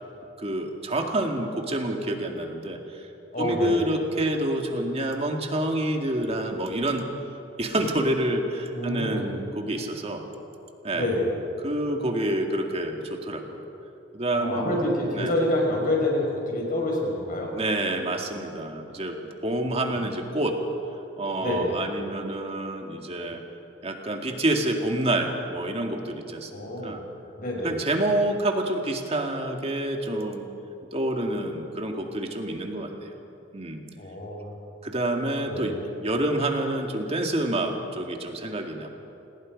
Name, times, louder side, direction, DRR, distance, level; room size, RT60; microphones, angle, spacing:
voice 1, 0.4-2.8 3.4-7.1 7.6-10.3 10.8-11.1 11.6-13.6 14.1-15.3 17.5-19.2 19.4-20.6 21.2-23.4 23.8-27.0 27.6-30.5 30.9-33.1 33.5-33.8 34.8-38.9, right 1 dB, 35° right, 3 dB, 2.1 m, -28 dB
voice 2, 3.3-3.7 8.7-9.2 10.9-11.3 14.3-17.5 19.5-20.0 21.4-21.7 26.5-27.0 27.4-27.8 34.0-34.5 35.5-35.8, left 1 dB, 50° left, -1 dB, 5.7 m, -27 dB
27.5 x 19.5 x 5.3 m, 2.8 s
head